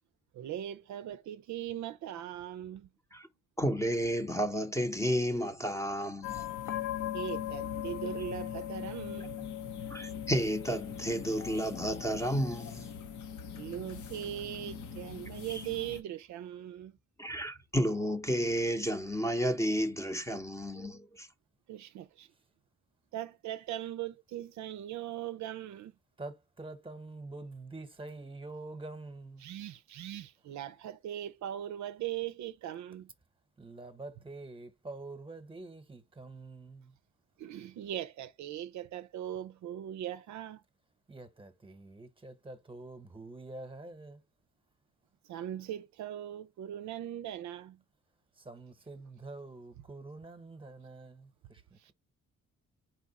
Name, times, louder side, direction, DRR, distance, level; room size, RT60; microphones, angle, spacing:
voice 1, 0.3-2.9 7.1-9.4 13.6-17.0 21.7-22.3 23.1-25.9 29.4-33.1 37.4-40.6 45.2-47.8 51.8-51.9, right 11 dB, 70° right, 0.5 m, -40 dB
voice 2, 3.6-6.4 9.9-12.9 15.5-15.6 17.2-21.3, equal, 10° left, 0.7 m, -31 dB
sound 1, 6.2-16.0, left 9 dB, 75° left, 0.9 m, -40 dB
voice 3, 26.2-29.4 33.6-36.9 41.1-44.2 48.4-51.9, right 2 dB, 15° right, 1.0 m, -46 dB
4.5 x 2.4 x 4.0 m
cardioid pair, 90°, 30 cm